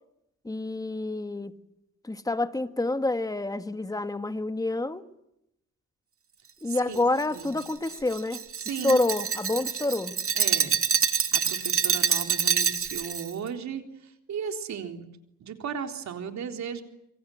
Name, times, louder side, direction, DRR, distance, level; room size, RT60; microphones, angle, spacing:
voice 1, 0.4-1.6 2.0-5.0 6.6-10.2, left 2 dB, 10° left, 1.8 m, -28 dB
voice 2, 6.7-7.0 7.3-7.5 8.6-9.0 10.4-10.8 11.3-15.0 15.4-16.8, right 7 dB, 65° right, 3.8 m, -35 dB
Glass, 6.9-13.3, right 7 dB, 45° right, 2.5 m, -26 dB
27.5 x 25.0 x 7.9 m
cardioid pair, 90°, 30 cm